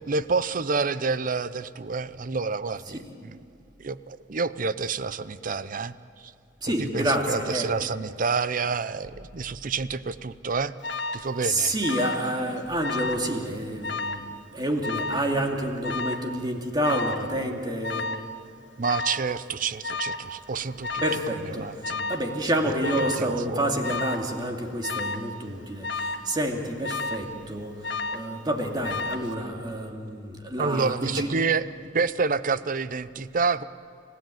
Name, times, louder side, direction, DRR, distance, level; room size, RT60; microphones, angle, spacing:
voice 1, 0.1-3.4 3.8-6.3 6.8-10.7 11.1-11.7 18.8-21.0 21.5-22.1 23.0-23.8 30.6-31.7 31.9-33.6, right 4 dB, 50° right, 15 dB, 0.6 m, -28 dB
voice 2, 6.6-7.7 11.4-18.1 21.0-21.7 22.1-31.3, right 1 dB, 25° right, 2 dB, 2.4 m, -28 dB
Alarm, 10.8-11.3 11.8-12.3 12.6-13.3 13.8-14.3 14.8-15.3 15.8-16.3 16.8-17.3 17.8-18.3 18.8-19.3 19.8-20.3 20.8-21.3 21.8-22.3 22.8-23.3 23.8-24.3 24.8-25.3 25.8-26.3 26.8-27.3 27.8-28.3 28.8-29.3, left 3 dB, 75° left, 1.2 m, -31 dB
30.0 x 15.5 x 9.1 m, 2.5 s
head